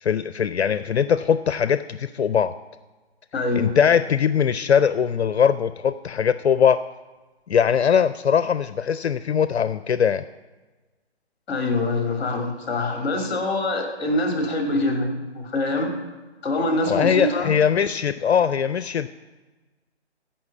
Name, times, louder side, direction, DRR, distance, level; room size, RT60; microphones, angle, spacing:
voice 1, 0.0-2.5 3.5-6.8 7.5-10.2 16.9-19.1, left 7 dB, 70° left, 13 dB, 0.5 m, -21 dB
voice 2, 3.3-3.8 11.5-15.9 16.4-17.5, left 2 dB, 20° left, 2 dB, 2.4 m, -24 dB
15.0 x 5.7 x 7.1 m, 1.2 s
figure-of-eight pair, 155°, 33 cm